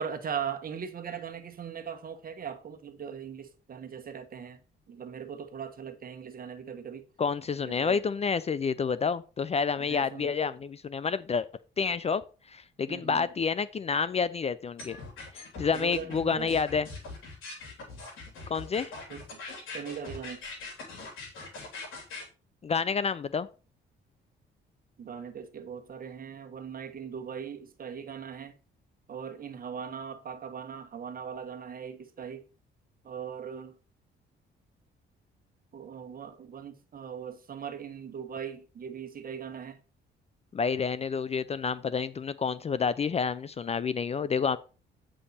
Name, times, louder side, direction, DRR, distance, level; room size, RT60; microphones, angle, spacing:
voice 1, 0.0-4.6 4.9-7.0 7.7-8.0 9.9-10.3 12.9-13.3 15.7-16.5 19.1-19.2 19.7-20.4 25.0-28.5 29.1-32.4 33.0-33.7 35.7-39.8, right 7 dB, 45° right, 1.3 m, -39 dB
voice 2, 7.2-11.5 11.8-12.2 12.5-15.0 15.3-16.9 18.5-18.9 22.6-23.5 40.5-44.6, left 5 dB, 30° left, 0.4 m, -29 dB
sound 1, 14.8-22.2, left 3 dB, 85° left, 3.4 m, -42 dB
8.4 x 5.4 x 4.2 m
cardioid pair, 90°, 20 cm